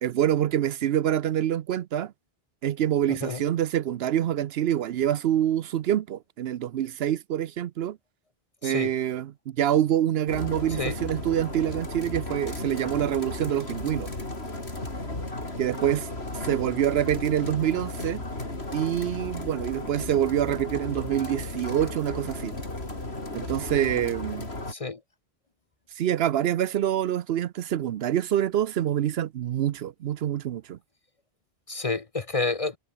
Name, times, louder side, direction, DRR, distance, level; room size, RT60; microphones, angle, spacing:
voice 1, 0.0-2.1 2.6-8.0 8.6-14.1 15.6-16.1 16.5-18.2 18.7-22.6 23.3-24.5 26.0-30.8, right 11 dB, 75° right, 0.8 m, -26 dB
voice 2, 3.1-3.4 8.6-8.9 10.8-10.9 24.7-25.0 31.7-32.8, left 3 dB, 35° left, 0.8 m, -29 dB
sound 1, 10.3-24.7, left 2 dB, 80° left, 5.2 m, -35 dB
omnidirectional pair, 1.1 m